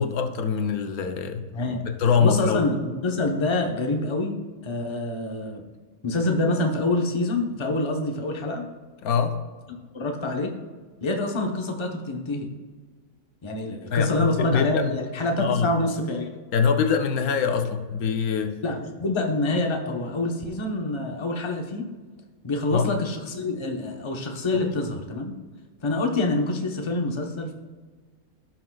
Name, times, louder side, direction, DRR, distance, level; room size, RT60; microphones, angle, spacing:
voice 1, 0.0-1.4 1.9-2.6 9.0-9.4 13.9-15.0 15.4-15.7 16.5-18.5 22.7-22.9, left 6 dB, 80° left, 6 dB, 1.2 m, -23 dB
voice 2, 1.5-1.9 2.2-4.3 4.6-5.6 6.0-8.6 9.9-10.5 11.0-12.5 13.4-16.4 18.6-21.9 22.4-25.3 25.8-27.5, left 2 dB, 25° left, 2 dB, 0.8 m, -26 dB
16.0 x 6.2 x 2.3 m, 1.4 s
omnidirectional pair, 1.5 m